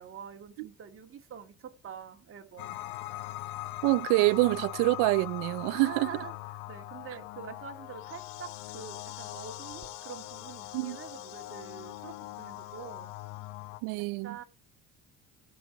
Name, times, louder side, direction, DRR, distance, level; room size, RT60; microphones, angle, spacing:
voice 1, 0.0-2.8 5.8-13.1 14.2-14.4, right 7 dB, 40° right, 2.1 m, -45 dB
sound 1, 2.6-13.8, left 16 dB, 85° left, 1.0 m, -41 dB
voice 2, 3.8-6.1 10.7-11.0 13.8-14.4, right 21 dB, 85° right, 0.6 m, -26 dB
14.5 x 5.7 x 4.4 m
supercardioid pair, 95°, 32 cm